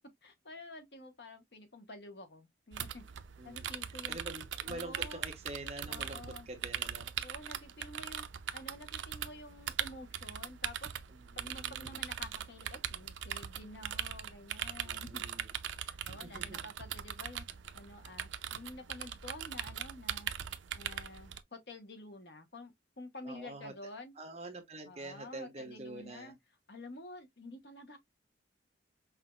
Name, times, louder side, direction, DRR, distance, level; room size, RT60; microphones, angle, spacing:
voice 1, 0.2-3.0 3.4-4.2 4.7-5.2 5.9-6.5 7.2-8.2 8.5-11.0 11.3-15.2 15.8-17.5 17.7-20.3 20.7-24.1 24.9-26.4 26.7-28.0, left 2 dB, 60° left, 1.1 m, -49 dB
sound 1, 2.7-21.4, right 9 dB, 75° right, 0.5 m, -41 dB
voice 2, 3.4-3.7 4.1-7.1 11.1-12.0 14.8-15.6 16.1-16.7 23.2-23.7 24.2-26.3, right 2 dB, 35° right, 1.0 m, -46 dB
5.8 x 2.7 x 2.3 m
head